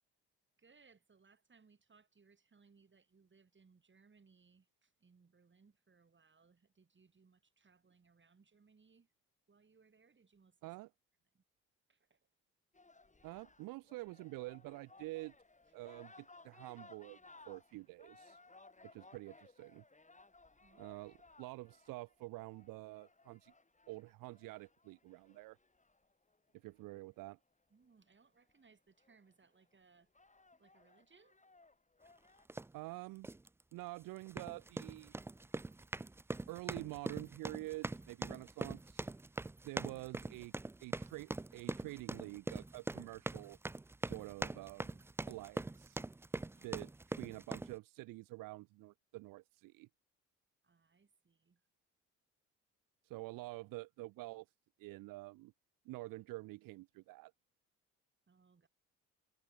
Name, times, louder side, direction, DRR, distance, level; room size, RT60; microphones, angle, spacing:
voice 1, 0.6-9.1 9.5-10.7 11.3-11.4 11.9-12.3 20.6-21.2 27.7-30.1 30.6-31.4 46.5-46.8 50.6-51.6 58.3-58.7, right 5 dB, 35° right, 5.9 m, -68 dB
sound 1, 12.7-27.0 28.5-28.6 29.0-29.4 30.0-32.5, left 3 dB, 20° left, 6.0 m, -62 dB
voice 2, 13.2-15.3 15.7-17.2 17.5-18.4 18.8-19.8 20.8-23.5 23.9-25.6 26.5-27.4 32.7-33.3 33.7-35.1 36.5-39.1 39.6-40.5 40.8-43.6 44.0-45.0 45.3-46.0 46.6-49.9 53.0-54.5 54.8-55.5 55.9-57.3, right 20 dB, 80° right, 0.8 m, -48 dB
sound 2, 32.5-32.7 33.2-33.5 34.2-47.7, right 2 dB, 10° right, 0.4 m, -42 dB
supercardioid pair, 60°, 33 cm